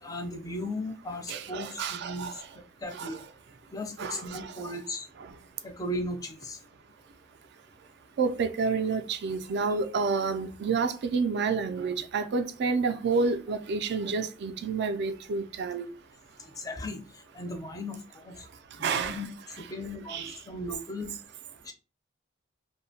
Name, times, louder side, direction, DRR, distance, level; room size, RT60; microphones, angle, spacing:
voice 1, 0.0-2.3 2.8-3.2 3.7-5.1 5.6-6.6 16.6-17.0 17.3-18.3 18.8-19.3 19.7-21.1 21.7-21.8, left 1 dB, 20° left, 0.4 m, -36 dB
voice 2, 1.3-2.3 2.9-3.2 4.0-4.7 8.2-15.9 18.8-19.2 20.1-20.4, right 4 dB, 55° right, 0.3 m, -29 dB
2.7 x 2.1 x 2.7 m
head